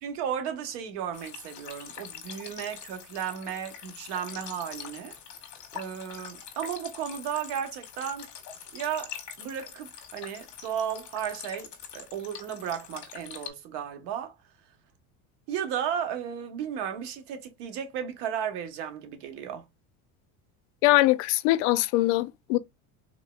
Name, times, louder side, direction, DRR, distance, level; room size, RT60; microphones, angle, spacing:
voice 1, 0.0-5.1 5.7-8.3 8.7-9.1 9.4-14.3 15.5-19.6, right 8 dB, 75° right, 1.2 m, -34 dB
sound 1, 1.1-13.5, left 8 dB, 45° left, 1.3 m, -44 dB
voice 2, 20.8-22.6, left 18 dB, 75° left, 0.6 m, -22 dB
3.8 x 3.0 x 2.2 m
supercardioid pair, 135°, 40 cm